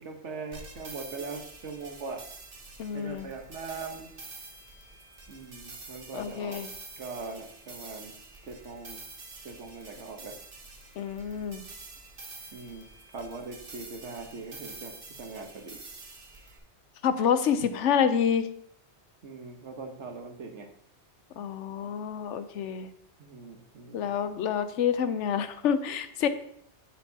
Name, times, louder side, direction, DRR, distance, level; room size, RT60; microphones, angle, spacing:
voice 1, 0.0-2.3 2.9-4.1 5.3-6.6 7.0-8.1 8.4-9.0 9.4-10.3 12.5-12.8 13.1-14.9 15.2-15.8 19.2-20.7 23.2-24.1, right 4 dB, 75° right, 4 dB, 1.5 m, -41 dB
sound 1, 0.5-16.6, right 3 dB, 50° right, 1.3 m, -47 dB
voice 2, 2.8-3.3 6.1-6.7 11.0-11.6 17.0-18.5 21.4-22.9 23.9-26.3, left 8 dB, 90° left, 11 dB, 1.0 m, -28 dB
10.5 x 7.8 x 2.8 m, 0.67 s
omnidirectional pair, 1.2 m